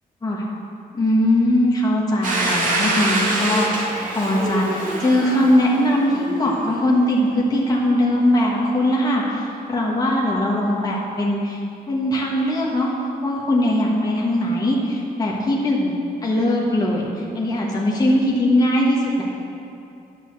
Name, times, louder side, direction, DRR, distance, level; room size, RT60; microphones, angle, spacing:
voice 1, 0.9-12.9 13.2-15.9 16.2-19.2, left 1 dB, 25° left, -4 dB, 1.4 m, -20 dB
Domestic sounds home sounds, 2.2-6.9, right 2 dB, 55° right, 2.0 m, -25 dB
11.0 x 5.3 x 7.4 m, 2.6 s
wide cardioid pair, 175°, 16 cm